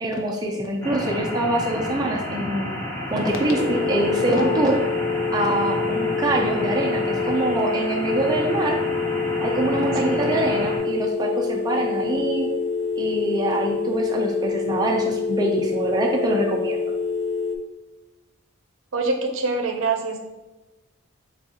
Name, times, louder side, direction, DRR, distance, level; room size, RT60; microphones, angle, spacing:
voice 1, 0.0-2.7 3.1-4.8 5.3-8.8 9.4-12.5 13.0-16.8, right 1 dB, 20° right, 0 dB, 0.4 m, -24 dB
sound 1, 0.8-10.8, left 1 dB, 10° left, 1.2 m, -31 dB
sound 2, 3.2-6.3, left 1 dB, 30° left, 1.5 m, -35 dB
sound 3, 3.3-17.6, left 4 dB, 70° left, 0.5 m, -26 dB
voice 2, 18.9-20.2, right 3 dB, 70° right, 4 dB, 0.6 m, -24 dB
7.0 x 2.3 x 2.8 m, 1.1 s
head